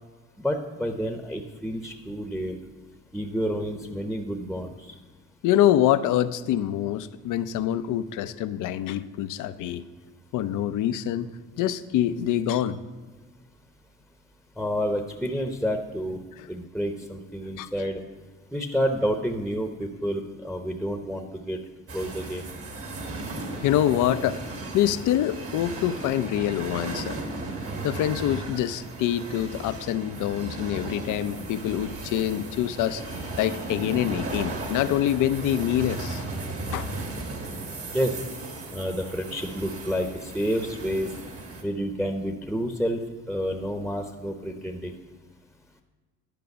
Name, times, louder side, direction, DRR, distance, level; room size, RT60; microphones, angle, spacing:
voice 1, 0.4-2.6 3.1-4.9 14.6-16.2 16.5-18.0 18.5-21.6 21.9-22.4 37.9-38.2 38.7-41.1 41.6-43.0 43.3-44.9, equal, ahead, 5 dB, 0.8 m, -29 dB
voice 2, 5.4-9.8 10.3-11.3 11.6-12.8 16.4-16.5 17.6-17.7 23.6-27.2 27.8-36.2 36.7-37.0, left 11 dB, 85° left, 13 dB, 0.5 m, -25 dB
sound 1, 21.9-41.6, right 2 dB, 50° right, 1.6 m, -36 dB
11.0 x 5.1 x 6.7 m, 1.4 s
cardioid pair, 90°, 30 cm